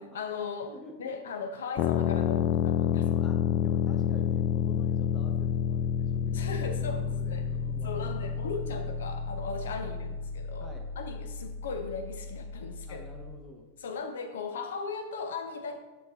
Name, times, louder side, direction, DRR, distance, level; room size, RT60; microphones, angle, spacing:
voice 1, 0.0-3.0 6.3-7.5 7.8-10.7 11.0-13.0 13.8-15.8, left 4 dB, 60° left, 8 dB, 0.8 m, -37 dB
voice 2, 0.6-1.2 2.9-8.7 10.6-10.9 12.9-13.7, left 1 dB, 20° left, 4 dB, 1.0 m, -49 dB
sound 1, 1.8-13.4, left 8 dB, 40° left, 0.4 m, -30 dB
10.5 x 4.3 x 3.5 m, 1.2 s
figure-of-eight pair, 90°, 0 cm